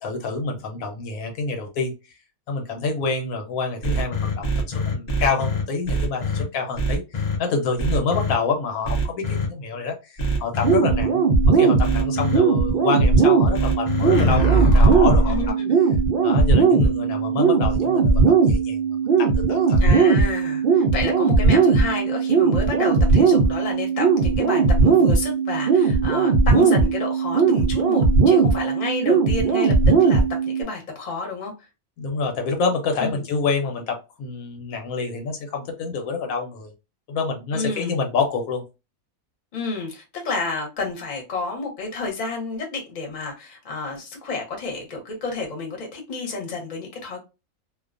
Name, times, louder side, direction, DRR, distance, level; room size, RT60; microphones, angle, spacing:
voice 1, 0.0-1.9 2.5-11.2 11.5-15.4 16.2-18.8 19.2-19.8 32.0-36.7 37.1-38.6, left 4 dB, 80° left, 1.0 m, -27 dB
sound 1, 3.8-6.4 6.8-7.4 7.8-8.3 8.8-9.5 10.2-10.8 11.8-12.4 13.5-15.5, right 1 dB, 60° left, 0.4 m, -22 dB
sound 2, 10.6-30.6, right 4 dB, 75° right, 0.5 m, -18 dB
voice 2, 15.3-15.8 19.8-31.5 33.0-33.2 37.5-38.0 39.5-47.2, left 4 dB, 40° left, 0.8 m, -30 dB
2.4 x 2.2 x 2.4 m
omnidirectional pair, 1.5 m